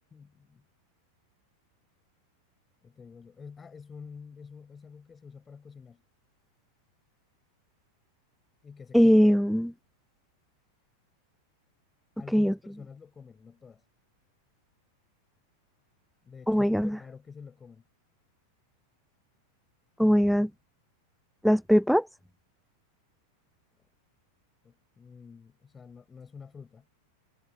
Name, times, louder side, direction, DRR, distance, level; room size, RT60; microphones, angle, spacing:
voice 1, 0.1-0.6 2.8-6.0 8.6-9.2 12.2-13.8 16.2-17.8 24.6-26.9, left 5 dB, 15° left, 5.7 m, -48 dB
voice 2, 8.9-9.7 12.3-12.5 16.5-17.0 20.0-20.5 21.4-22.0, equal, ahead, 0.4 m, -21 dB
figure-of-eight pair, 90°, 0 cm